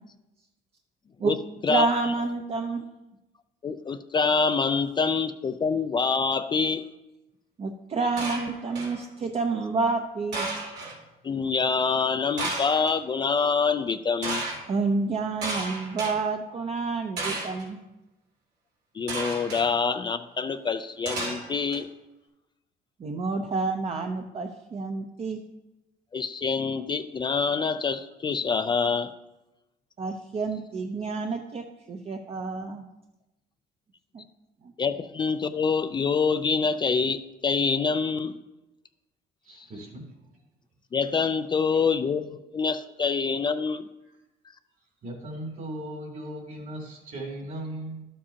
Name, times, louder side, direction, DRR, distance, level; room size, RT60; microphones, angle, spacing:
voice 1, 1.7-2.8 7.6-10.5 14.7-17.8 23.0-25.4 30.0-32.9 34.1-34.2 34.6-34.7, right 3 dB, 35° right, 4 dB, 0.7 m, -29 dB
voice 2, 3.6-6.8 11.2-14.4 18.9-21.9 26.1-29.1 34.8-38.4 39.6-39.7 40.9-43.9, left 5 dB, 25° left, 9 dB, 0.4 m, -26 dB
sound 1, 8.2-9.0 10.3-10.9 12.4-12.9 14.2-14.6 15.4-16.1 17.2-17.6 19.1-19.6 21.0-21.8, right 2 dB, 85° right, 2.9 m, -32 dB
voice 3, 39.5-40.1 41.7-41.8 45.0-48.0, right 1 dB, 55° right, 1 dB, 3.0 m, -37 dB
12.0 x 7.4 x 2.8 m, 1.0 s
cardioid pair, 110°, 17 cm